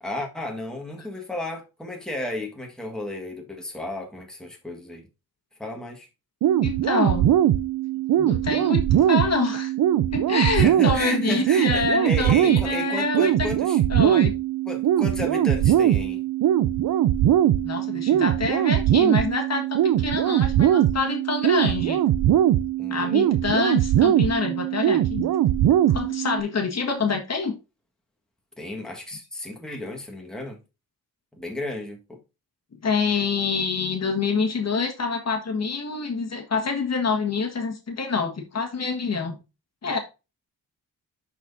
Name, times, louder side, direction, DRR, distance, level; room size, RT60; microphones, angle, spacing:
voice 1, 0.0-5.1 5.6-6.1 10.5-13.8 14.7-16.2 22.8-23.4 28.6-30.6 31.3-32.2, left 1 dB, ahead, 1.5 m, -33 dB
sound 1, 6.4-26.4, right 11 dB, 70° right, 0.5 m, -21 dB
voice 2, 6.6-7.3 8.2-9.7 10.1-13.5 13.9-14.3 17.6-22.0 22.9-25.3 25.9-27.5 32.8-39.4 39.8-40.0, left 4 dB, 45° left, 1.5 m, -26 dB
12.0 x 4.3 x 2.6 m
cardioid pair, 105°, 35 cm